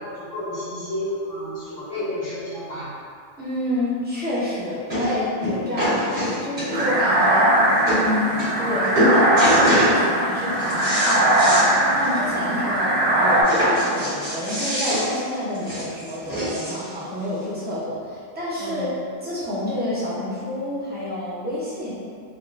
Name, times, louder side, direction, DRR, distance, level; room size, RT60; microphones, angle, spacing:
voice 1, 0.0-2.9 12.3-12.6 17.6-17.7 18.6-18.9, left 1 dB, 75° left, -9 dB, 1.4 m, -31 dB
voice 2, 3.4-7.5 7.9-18.9 19.2-22.0, left 1 dB, 10° right, -10 dB, 0.5 m, -29 dB
sound 1, 4.1-4.2 4.9-5.1 5.4-7.0 7.6-7.7 7.9-8.0 8.4-8.7 8.9-10.0 10.4-11.7 12.0-12.1 12.4-12.5 13.4-16.9 17.7-17.8, equal, 60° right, 1.7 m, -24 dB
sound 2, 6.7-13.4, right 1 dB, 75° right, 1.0 m, -20 dB
3.5 x 2.3 x 2.4 m, 2.3 s
omnidirectional pair, 1.3 m